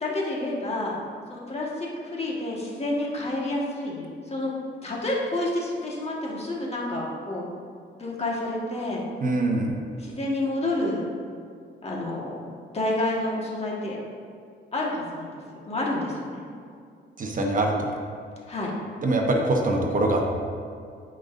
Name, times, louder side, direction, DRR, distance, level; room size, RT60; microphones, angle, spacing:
voice 1, 0.0-1.0 1.3-4.5 4.8-7.5 8.0-9.0 10.0-11.0 11.8-12.4 12.7-14.0 14.7-16.4 18.5-18.7, left 2 dB, 30° left, -3 dB, 1.7 m, -29 dB
voice 2, 9.2-9.8 17.2-17.9 19.0-20.2, right 2 dB, 40° right, 1 dB, 1.0 m, -23 dB
12.5 x 5.2 x 2.6 m, 2.2 s
cardioid pair, 90°, 20 cm